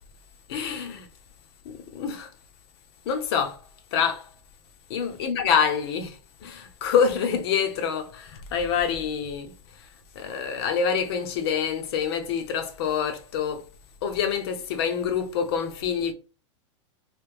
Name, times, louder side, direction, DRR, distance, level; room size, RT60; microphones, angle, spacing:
voice 1, 0.5-1.1 1.6-2.3 3.0-3.6 3.9-4.3 4.9-9.9 10.1-13.7 14.0-16.1, left 7 dB, 50° left, 0.7 m, -26 dB
3.2 x 2.8 x 3.3 m
supercardioid pair, 160°, 16 cm